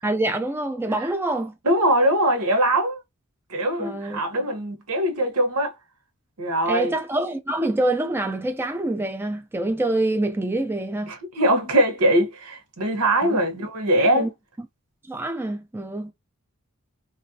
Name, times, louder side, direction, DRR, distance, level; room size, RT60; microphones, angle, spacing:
voice 1, 0.0-1.5 3.8-4.2 6.7-11.1 13.2-13.4 14.1-14.3 15.1-16.1, right 2 dB, 10° right, 0.3 m, -26 dB
voice 2, 1.6-3.0 3.5-5.7 6.4-6.9 11.1-14.3, right 1 dB, 90° right, 1.0 m, -22 dB
3.1 x 2.5 x 2.6 m
head